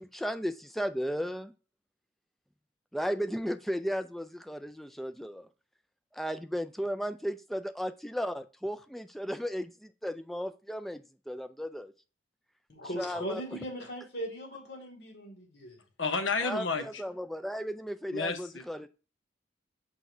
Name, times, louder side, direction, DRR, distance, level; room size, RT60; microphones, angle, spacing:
voice 1, 0.0-1.5 2.9-5.5 6.1-11.9 12.9-13.6 16.4-18.9, equal, ahead, 9 dB, 0.3 m, -35 dB
voice 2, 12.7-15.8, equal, 60° left, 0 dB, 2.5 m, -39 dB
voice 3, 16.0-16.8 18.1-18.6, left 4 dB, 85° left, 7 dB, 1.1 m, -30 dB
6.0 x 6.0 x 2.7 m, 0.33 s
head